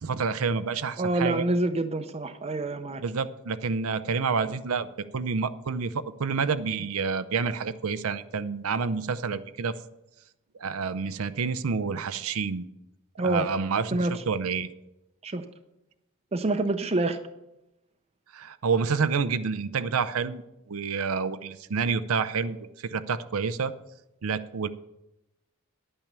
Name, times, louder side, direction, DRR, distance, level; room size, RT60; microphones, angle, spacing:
voice 1, 0.0-1.4 3.0-4.9 5.1-9.8 10.6-12.6 13.2-14.7 18.3-20.4 20.7-23.7 24.2-24.7, right 5 dB, 80° right, 12 dB, 0.6 m, -28 dB
voice 2, 1.0-3.0 13.2-13.5 13.9-14.2 15.2-15.4 16.3-17.2, right 2 dB, 30° right, 7 dB, 0.6 m, -27 dB
10.5 x 8.9 x 6.8 m, 0.92 s
head